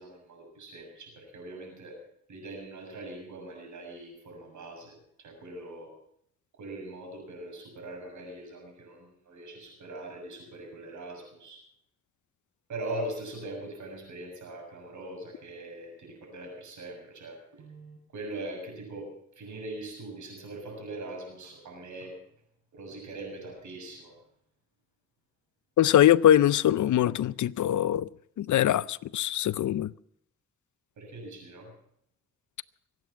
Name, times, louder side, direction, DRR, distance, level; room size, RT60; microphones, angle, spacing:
voice 1, 0.0-2.0 2.3-5.9 6.6-11.6 12.7-19.1 19.4-22.1 22.7-24.1 31.0-31.7, right 2 dB, 85° right, 7.1 m, -41 dB
voice 2, 25.8-28.1 28.4-29.9, left 11 dB, 85° left, 0.6 m, -22 dB
24.0 x 9.3 x 5.9 m
cardioid pair, 70°, 29 cm